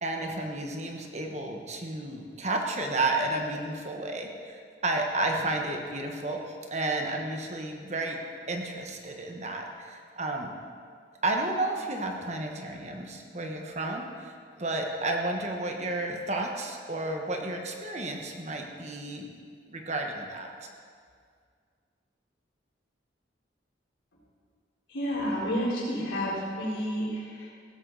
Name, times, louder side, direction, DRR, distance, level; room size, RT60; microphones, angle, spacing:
voice 1, 0.0-8.2 8.5-10.5 11.2-19.3 19.7-20.5, right 2 dB, 35° right, 2 dB, 1.3 m, -32 dB
voice 2, 24.9-27.5, equal, 90° left, -4 dB, 4.0 m, -30 dB
16.5 x 13.0 x 4.1 m, 2.1 s
head